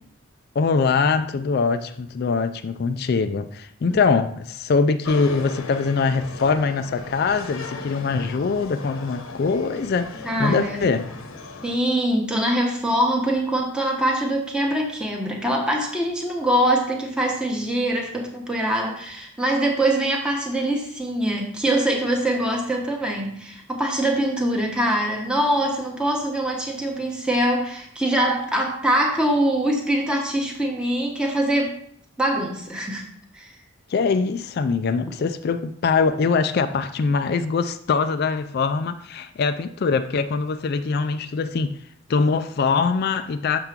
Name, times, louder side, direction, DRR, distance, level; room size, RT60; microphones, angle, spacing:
voice 1, 0.6-11.1 33.9-41.7 42.1-43.6, left 4 dB, 50° left, 0.3 m, -23 dB
sound 1, 5.0-11.8, left 3 dB, 75° left, 0.9 m, -37 dB
voice 2, 10.2-10.9 11.6-31.8 32.2-33.1 33.3-33.5, right 1 dB, 5° right, 0.9 m, -23 dB
6.7 x 3.6 x 5.8 m
head